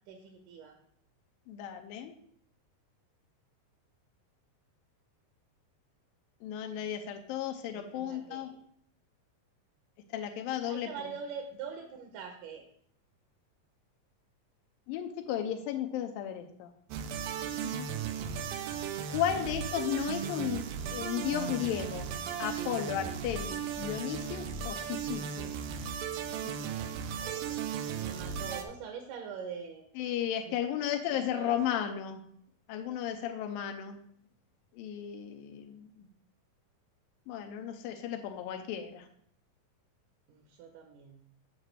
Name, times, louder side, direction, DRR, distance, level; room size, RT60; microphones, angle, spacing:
voice 1, 0.1-0.8 7.7-8.6 10.7-12.6 27.2-29.8 30.5-30.6 31.1-31.8 40.3-41.2, right 6 dB, 75° right, 4 dB, 2.3 m, -44 dB
voice 2, 1.5-2.1 6.4-8.5 10.1-11.1 14.9-16.7 17.6-17.9 19.1-22.1 22.4-25.5 26.4-26.5 30.0-32.2 32.7-34.0 34.7-36.1 37.3-39.1, left 10 dB, 85° left, 5 dB, 2.4 m, -34 dB
sound 1, 16.9-28.6, right 7 dB, 90° right, 2.4 m, -36 dB
8.0 x 7.4 x 3.2 m, 0.66 s
omnidirectional pair, 4.1 m